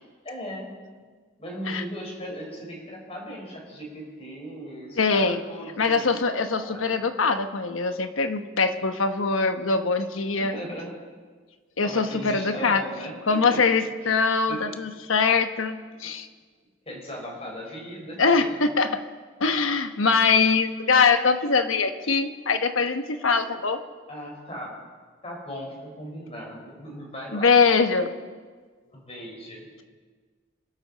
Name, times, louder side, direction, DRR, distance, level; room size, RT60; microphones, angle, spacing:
voice 1, 0.2-0.7 1.4-6.2 6.5-6.9 10.4-10.9 11.8-13.6 14.0-14.1 14.5-14.8 16.0-16.1 16.8-18.5 24.1-24.7 25.2-27.5 28.9-29.8, equal, 30° left, -1 dB, 4.7 m, -37 dB
voice 2, 5.0-5.4 5.8-10.5 11.8-12.8 13.3-16.3 18.2-19.0 19.4-23.8 27.3-28.1, left 4 dB, 80° left, 8 dB, 1.1 m, -22 dB
25.5 x 13.0 x 4.2 m, 1.5 s
head